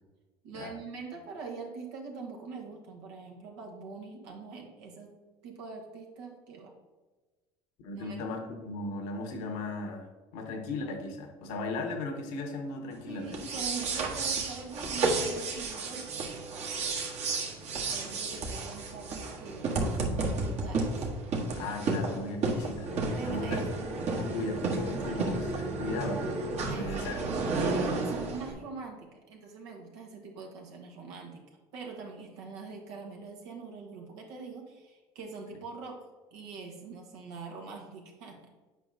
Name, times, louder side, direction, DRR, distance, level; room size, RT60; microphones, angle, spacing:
voice 1, 0.4-6.8 7.9-8.2 13.0-17.0 17.9-20.9 23.1-24.0 26.7-31.5 31.7-36.0 36.3-38.4, right 4 dB, 80° right, 1 dB, 1.4 m, -43 dB
voice 2, 7.8-13.4 21.6-23.6 24.2-26.5 26.7-27.2, left 2 dB, 75° left, 4 dB, 1.2 m, -37 dB
sound 1, 13.3-28.5, right 3 dB, 50° right, 1.4 m, -32 dB
8.3 x 5.0 x 2.7 m, 1.3 s
hypercardioid pair, 75°, 14 cm